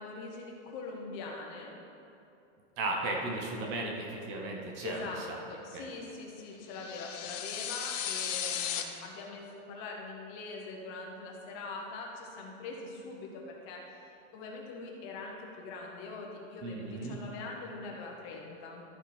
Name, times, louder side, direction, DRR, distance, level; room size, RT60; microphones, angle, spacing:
voice 1, 0.0-1.7 4.8-5.2 5.5-18.8, left 3 dB, 30° left, -1 dB, 1.0 m, -43 dB
voice 2, 2.8-5.1 5.7-5.9 16.6-17.2, right 2 dB, 30° right, 0 dB, 0.9 m, -35 dB
sound 1, 6.7-8.8, left 9 dB, 80° left, 0.9 m, -35 dB
13.0 x 4.9 x 4.3 m, 2.8 s
supercardioid pair, 165°, 37 cm